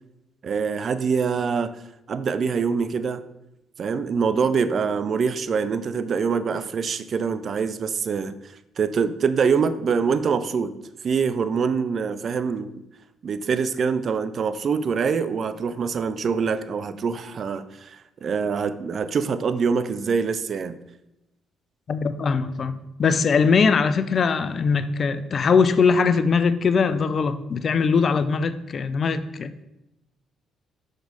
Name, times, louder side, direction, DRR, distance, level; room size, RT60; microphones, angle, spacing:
voice 1, 0.4-1.8 2.1-3.2 3.8-8.4 8.8-10.7 11.0-12.8 13.2-20.8, right 5 dB, 50° right, 13 dB, 0.4 m, -24 dB
voice 2, 21.9-29.5, left 5 dB, 50° left, 13 dB, 0.4 m, -21 dB
6.0 x 5.1 x 4.0 m, 0.92 s
hypercardioid pair, 50°, 0 cm